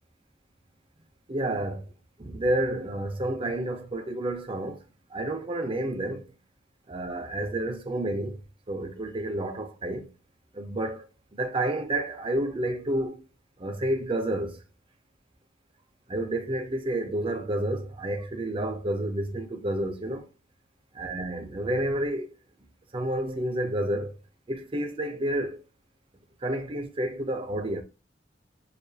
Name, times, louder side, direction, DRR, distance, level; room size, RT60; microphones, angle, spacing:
voice 1, 1.3-1.9 2.2-4.8 5.1-6.4 6.9-8.4 8.7-10.1 10.5-11.1 11.3-13.2 13.6-14.6 16.1-20.3 20.9-22.3 22.9-24.2 24.5-25.6 26.4-27.8, right 1 dB, 30° right, 0.6 m, -30 dB
6.6 x 2.4 x 2.7 m
head